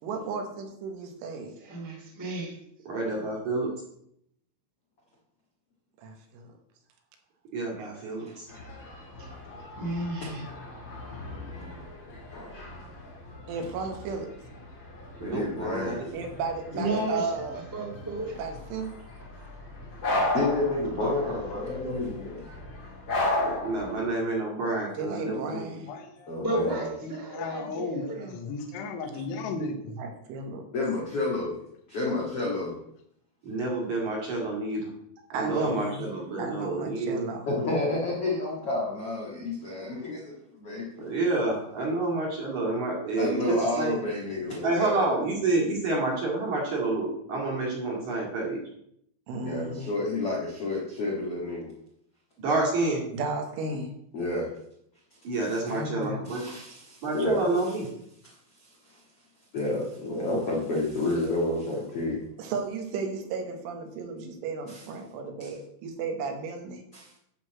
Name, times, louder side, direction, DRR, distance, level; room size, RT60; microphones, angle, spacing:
voice 1, 0.0-1.6 6.0-6.5 7.8-7.9 8.5-8.7 13.5-14.3 16.1-17.6 18.3-19.0 25.0-25.9 30.0-30.7 35.3-36.1 36.4-37.5 49.3-49.9 53.1-53.9 55.7-56.3 62.4-66.8, right 4 dB, 80° right, 4 dB, 3.7 m, -34 dB
voice 2, 1.6-2.5 9.2-9.3 9.7-10.4 16.7-17.4 17.7-18.4 26.4-28.3, right 1 dB, 10° right, -3 dB, 1.0 m, -32 dB
voice 3, 2.9-3.8 7.5-8.5 15.2-16.1 21.0-21.3 23.3-25.7 33.4-34.9 35.3-37.2 41.0-44.0 44.6-48.6 52.4-53.0 55.2-56.4 57.0-57.9, right 2 dB, 50° right, -2 dB, 2.8 m, -29 dB
sound 1, 8.5-23.9, left 1 dB, 45° left, 1.6 m, -36 dB
voice 4, 12.3-12.7 15.2-16.0 20.3-22.4 26.3-26.8 30.7-31.6 31.9-32.7 35.5-35.7 37.5-41.1 43.2-45.1 49.4-51.7 54.1-54.5 56.3-57.4 58.2-58.3 58.9-59.0 59.5-62.2 64.7-64.8 65.4-65.5 66.9-67.1, left 2 dB, 60° left, -3 dB, 1.5 m, -30 dB
voice 5, 25.9-30.0, left 3 dB, 80° left, 5 dB, 3.5 m, -36 dB
11.0 x 4.0 x 7.5 m, 0.73 s
omnidirectional pair, 5.6 m